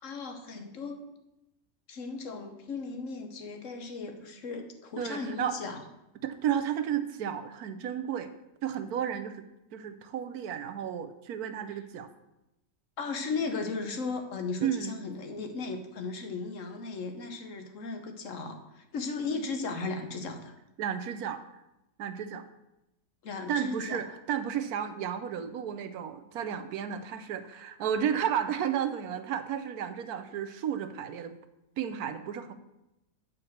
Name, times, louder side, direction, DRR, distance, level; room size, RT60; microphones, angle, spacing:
voice 1, 0.0-1.0 1.9-5.8 11.7-11.8 13.0-20.5 23.2-24.0, left 4 dB, 60° left, 5 dB, 1.3 m, -36 dB
voice 2, 5.0-5.6 6.2-8.3 8.6-9.4 9.7-12.1 14.6-15.0 20.8-21.4 22.0-22.4 23.5-31.3 31.8-32.5, right 9 dB, 80° right, 9 dB, 1.2 m, -32 dB
8.6 x 4.5 x 6.5 m, 0.91 s
omnidirectional pair, 1.6 m